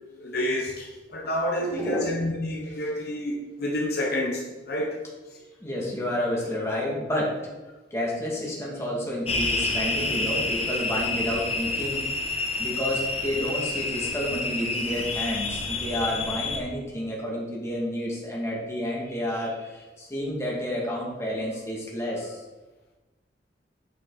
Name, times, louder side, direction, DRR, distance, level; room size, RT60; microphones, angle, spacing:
voice 1, 0.0-5.0, left 1 dB, 55° left, 1.1 m, -29 dB
voice 2, 1.6-2.1 5.6-7.4 7.9-12.1 12.6-22.4, left 1 dB, 15° left, 2.0 m, -30 dB
sound 1, 9.3-16.6, left 3 dB, 35° left, 1.0 m, -29 dB
8.5 x 5.9 x 4.0 m
head